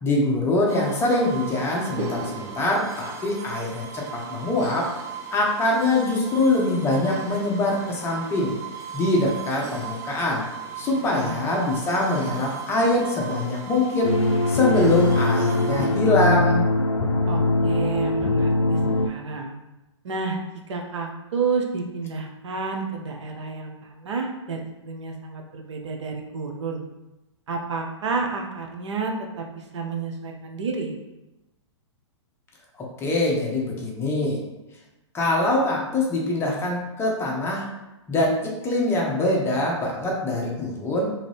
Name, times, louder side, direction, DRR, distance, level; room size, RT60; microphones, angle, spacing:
voice 1, 0.0-4.9 5.3-8.5 8.9-10.5 10.8-14.1 14.5-16.7 32.8-34.4 35.1-37.7 38.1-41.1, left 2 dB, 15° left, -2 dB, 0.7 m, -23 dB
sound 1, 0.7-15.9, right 6 dB, 20° right, 0.3 m, -37 dB
voice 2, 10.8-11.5 17.3-19.5 20.0-20.4 20.7-26.8 27.5-30.9, right 4 dB, 70° right, 2 dB, 0.6 m, -30 dB
sound 2, 14.0-19.1, left 2 dB, 85° left, 0.4 m, -21 dB
2.6 x 2.5 x 3.2 m, 0.98 s
hypercardioid pair, 120°, 16 cm